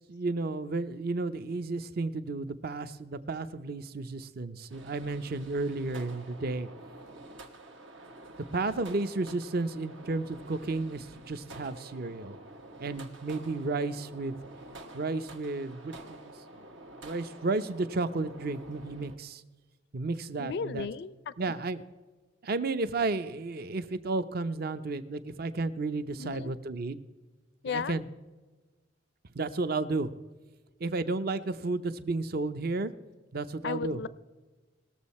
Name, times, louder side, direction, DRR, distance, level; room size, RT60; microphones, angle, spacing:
voice 1, 0.1-6.7 8.5-12.4 12.8-14.4 14.9-16.2 16.5-16.6 17.0-19.4 19.9-20.9 21.4-21.8 22.4-27.0 27.7-28.0 29.3-30.1 30.8-32.9 33.3-34.0, right 3 dB, 55° right, 12 dB, 0.6 m, -32 dB
sound 1, 4.7-19.2, right 2 dB, 80° right, 1.3 m, -49 dB
voice 2, 20.4-21.5 26.2-26.5 27.6-28.0 33.6-34.1, left 5 dB, 60° left, 17 dB, 0.4 m, -35 dB
19.5 x 7.1 x 4.2 m, 1.3 s
head